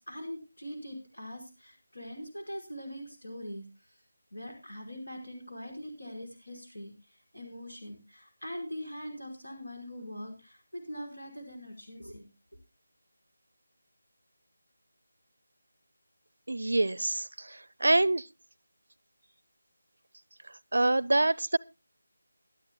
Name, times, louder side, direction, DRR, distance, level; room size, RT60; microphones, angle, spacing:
voice 1, 0.0-3.6 4.3-6.9 7.3-12.3, equal, 80° left, 5.1 m, -42 dB
voice 2, 16.5-18.3 20.7-21.6, right 2 dB, 65° right, 0.6 m, -26 dB
22.0 x 12.0 x 2.2 m
figure-of-eight pair, 160°, 0 cm